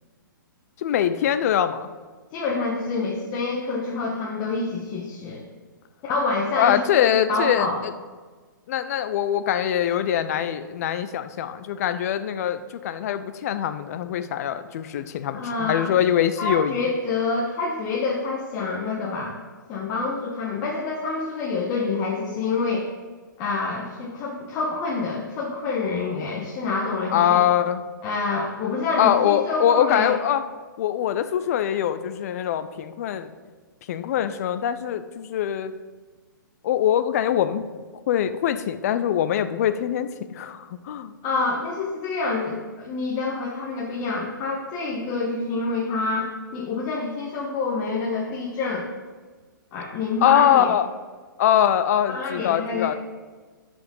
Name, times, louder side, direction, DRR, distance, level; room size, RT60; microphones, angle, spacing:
voice 1, 0.8-1.9 6.6-7.7 8.7-16.8 27.1-27.8 29.0-30.4 30.8-33.3 33.9-35.7 36.6-37.6 38.1-41.1 50.2-50.9 51.4-52.9, left 10 dB, 45° left, 11 dB, 0.6 m, -23 dB
voice 2, 2.3-5.4 6.0-6.8 7.3-7.8 15.3-15.9 16.4-19.4 19.7-22.9 23.4-27.4 28.0-30.1 41.2-48.9 49.7-50.7 52.1-52.9, left 3 dB, 30° left, -3 dB, 1.4 m, -27 dB
11.5 x 5.2 x 5.5 m, 1.4 s
figure-of-eight pair, 120°, 11 cm